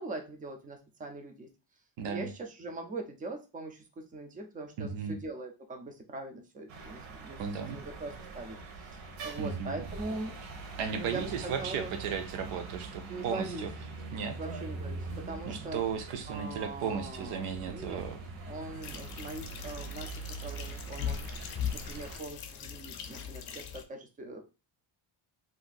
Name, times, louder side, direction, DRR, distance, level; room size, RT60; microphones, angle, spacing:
voice 1, 0.0-1.5 2.0-7.4 7.7-10.4 10.9-12.0 13.1-13.7 14.4-15.8 16.3-18.1 18.5-21.3 21.7-24.4, right 2 dB, 20° right, 5 dB, 0.3 m, -41 dB
voice 2, 2.0-2.3 4.8-5.2 7.4-7.8 9.4-9.9 10.8-13.7 14.1-14.4 15.5-18.2, right 6 dB, 85° right, 7 dB, 0.8 m, -35 dB
sound 1, 6.7-22.2, right 3 dB, 70° right, 0.9 m, -43 dB
sound 2, 18.8-23.8, left 7 dB, 50° left, 0.5 m, -39 dB
2.6 x 2.6 x 3.8 m, 0.30 s
cardioid pair, 170°, 49 cm